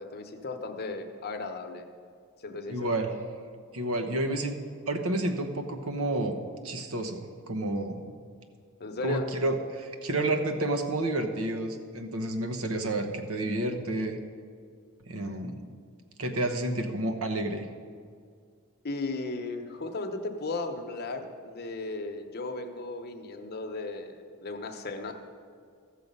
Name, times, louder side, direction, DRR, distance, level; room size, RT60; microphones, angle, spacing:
voice 1, 0.0-1.8 2.4-3.0 8.8-9.3 18.8-25.1, left 3 dB, 45° left, 4 dB, 0.9 m, -36 dB
voice 2, 2.7-3.2 3.7-4.6 4.9-6.4 6.6-8.0 9.0-14.2 15.1-15.6 16.2-17.6, right 1 dB, 65° right, 6 dB, 1.1 m, -30 dB
15.0 x 6.6 x 5.4 m, 2.1 s
head